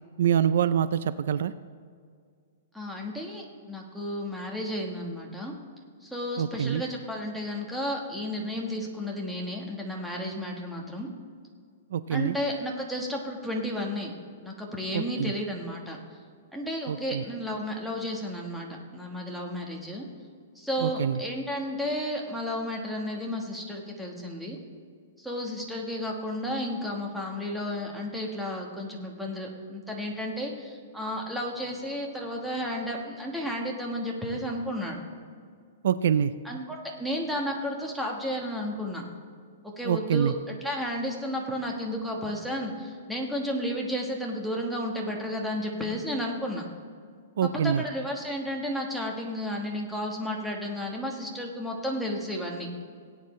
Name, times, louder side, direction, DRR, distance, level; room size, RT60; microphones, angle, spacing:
voice 1, 0.2-1.5 6.4-6.8 11.9-12.4 14.9-15.3 16.9-17.2 20.8-21.2 35.8-36.3 39.8-40.3 47.4-47.8, right 8 dB, 65° right, 14 dB, 0.4 m, -25 dB
voice 2, 2.7-5.6 6.0-11.1 12.1-14.1 14.4-16.0 16.5-20.1 20.5-24.6 25.2-35.0 36.4-39.0 39.6-46.7 47.4-52.7, equal, ahead, -1 dB, 1.3 m, -32 dB
18.0 x 9.4 x 3.2 m, 2.1 s
hypercardioid pair, 160°, 0 cm